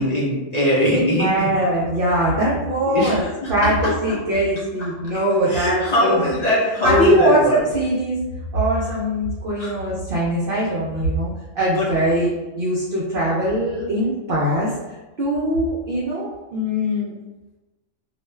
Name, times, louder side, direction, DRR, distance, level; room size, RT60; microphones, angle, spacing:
voice 1, 0.0-1.3 2.9-3.5 5.5-7.6 9.6-9.7 11.8-11.9, left 1 dB, 40° left, -7 dB, 0.6 m, -20 dB
voice 2, 0.9-3.2 3.5-6.3 6.8-8.2 8.5-14.7 15.2-17.1, right 1 dB, 60° right, -6 dB, 0.6 m, -21 dB
2.4 x 2.2 x 3.1 m, 1.1 s
omnidirectional pair, 1.4 m